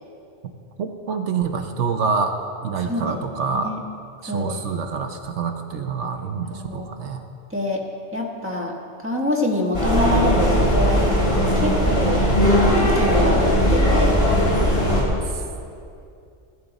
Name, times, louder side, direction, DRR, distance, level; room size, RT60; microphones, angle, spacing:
voice 1, 0.8-2.3 2.6-3.7 4.2-7.2, right 5 dB, 75° right, 6 dB, 1.0 m, -26 dB
voice 2, 2.8-3.8 4.3-5.1 6.5-6.9 7.5-7.8 8.1-12.2 12.8-14.2, left 1 dB, 10° right, -1 dB, 1.4 m, -26 dB
sound 1, 9.7-15.0, equal, 55° left, 3.6 m, -18 dB
15.5 x 11.0 x 4.0 m, 2.5 s
omnidirectional pair, 1.2 m